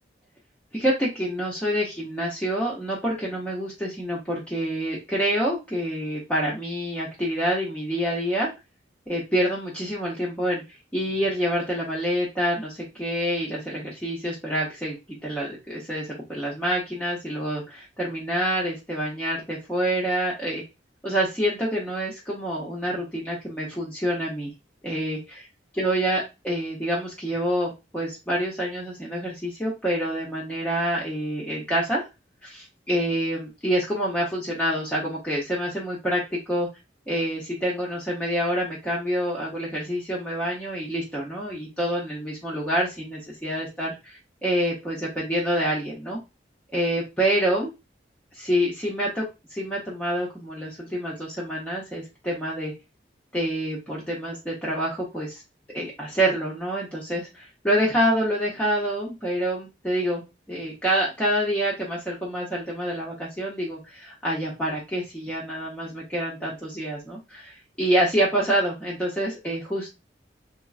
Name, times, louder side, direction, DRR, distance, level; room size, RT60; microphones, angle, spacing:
voice 1, 0.7-8.5 9.1-10.6 10.9-15.0 15.2-20.6 21.0-24.5 24.8-25.5 25.8-32.1 32.4-36.7 37.1-46.2 46.7-47.7 48.4-49.2 49.5-52.7 53.3-55.4 55.7-60.2 60.5-69.9, equal, 10° left, -6 dB, 0.6 m, -27 dB
3.6 x 2.0 x 2.3 m, 0.25 s
head